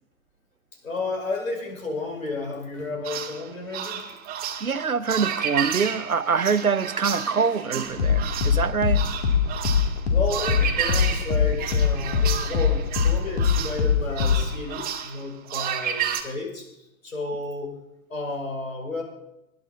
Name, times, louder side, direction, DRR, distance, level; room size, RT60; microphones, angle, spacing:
voice 1, 0.8-4.0 10.1-17.7 18.1-19.0, left 2 dB, 70° left, 5.3 m, -32 dB
sound 1, 3.0-16.2, right 9 dB, 20° right, 1.6 m, -31 dB
voice 2, 4.6-9.0, right 5 dB, 85° right, 0.8 m, -25 dB
sound 2, 5.9-14.6, left 6 dB, 45° left, 2.0 m, -24 dB
20.0 x 10.5 x 4.1 m
figure-of-eight pair, 105°, 42 cm